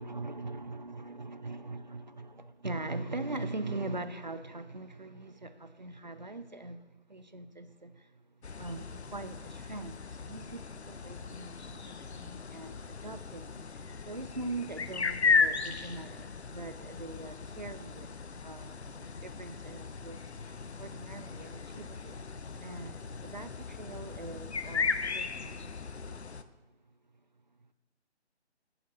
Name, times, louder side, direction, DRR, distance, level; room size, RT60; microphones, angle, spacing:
voice 1, 0.0-6.8 7.1-8.1 8.6-18.1 18.4-25.7, right 2 dB, 40° right, 0.5 m, -42 dB
sound 1, 8.4-26.4, left 5 dB, 70° left, 0.6 m, -36 dB
11.0 x 8.6 x 3.1 m
figure-of-eight pair, 155°, 34 cm